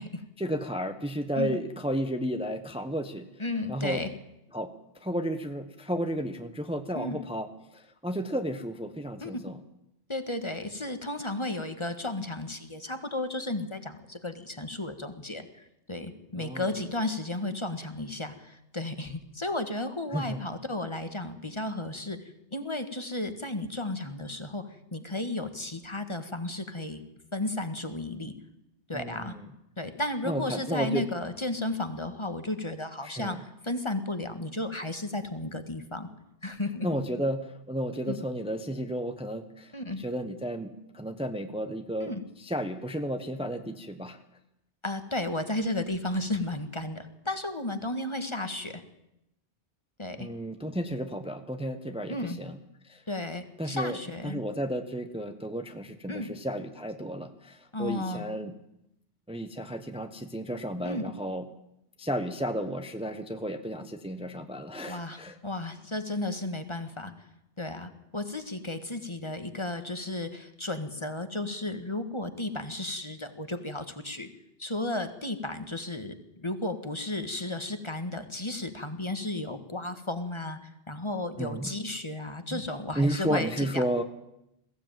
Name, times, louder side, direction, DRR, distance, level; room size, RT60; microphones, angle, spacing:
voice 1, 0.4-3.3 3.7-4.0 4.5-4.7 5.0-7.5 7.7-9.6 16.4-16.7 20.1-20.4 28.9-29.5 30.2-31.0 33.0-33.4 36.8-39.7 40.0-42.1 42.4-44.2 50.2-52.6 52.9-53.0 53.6-54.0 54.2-58.5 59.3-61.4 62.0-65.4 81.4-81.7 82.5-82.6 83.0-84.0, equal, 5° right, 7 dB, 1.0 m, -32 dB
voice 2, 3.4-4.1 6.9-7.2 9.2-9.4 10.1-22.2 22.5-27.0 27.3-28.3 28.9-29.3 29.8-36.1 36.4-36.9 38.1-38.2 39.7-40.0 42.0-42.2 44.8-48.8 50.0-50.3 52.1-52.4 53.1-54.4 56.1-56.3 57.7-58.3 60.8-61.1 64.9-67.3 67.6-74.3 74.6-83.8, left 2 dB, 25° left, 9 dB, 1.5 m, -34 dB
21.0 x 15.5 x 9.1 m, 0.86 s
omnidirectional pair, 1.1 m